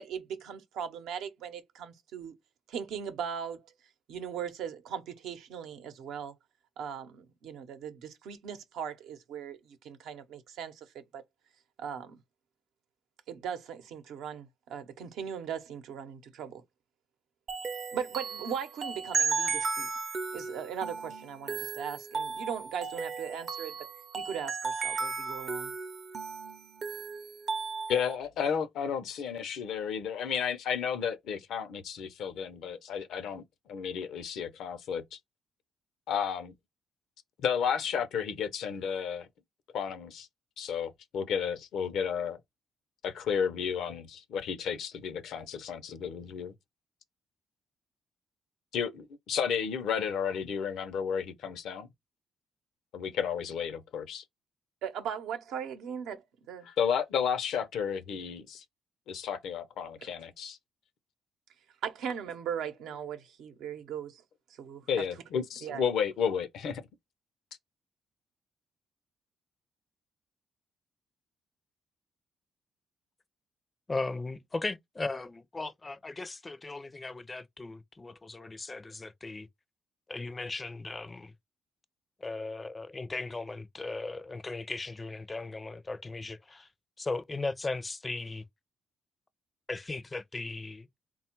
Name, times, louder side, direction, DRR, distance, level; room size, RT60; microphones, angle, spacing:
voice 1, 0.0-2.3 2.7-3.6 4.1-6.3 6.8-11.2 11.8-12.2 13.3-16.6 17.9-19.9 20.3-23.7 24.1-25.7 54.8-56.7 61.8-64.2 64.6-64.8 65.6-65.8, right 8 dB, 85° right, 0.7 m, -39 dB
sound 1, 17.5-28.2, right 5 dB, 50° right, 0.6 m, -35 dB
voice 2, 27.9-33.4 33.7-35.2 36.1-36.5 37.4-39.3 39.7-40.3 40.6-42.4 43.0-46.5 48.7-51.9 52.9-54.2 56.6-58.6 59.1-60.6 64.9-66.8, left 7 dB, 80° left, 0.6 m, -32 dB
voice 3, 73.9-79.5 80.1-81.3 82.2-86.7 87.0-88.4 89.7-91.0, left 3 dB, 25° left, 0.4 m, -37 dB
3.5 x 2.3 x 4.4 m
cardioid pair, 90°, 0 cm